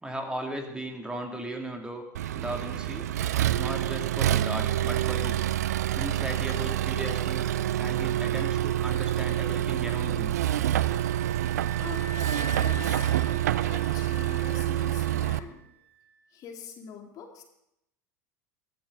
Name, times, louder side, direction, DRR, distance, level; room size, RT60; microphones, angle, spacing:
voice 1, 0.0-2.0 2.3-3.1 3.6-5.5 5.9-7.5 7.8-10.3, right 1 dB, 10° right, 3 dB, 2.6 m, -36 dB
Accelerating revving vroom, 2.1-15.4, right 13 dB, 65° right, 0.6 m, -27 dB
sound 1, 8.7-15.5, right 1 dB, 45° right, 5.0 m, -43 dB
voice 2, 11.8-13.2 13.7-15.7 16.3-17.4, left 7 dB, 40° left, 3 dB, 2.3 m, -44 dB
20.5 x 14.0 x 3.9 m, 0.80 s
figure-of-eight pair, 75°, 9 cm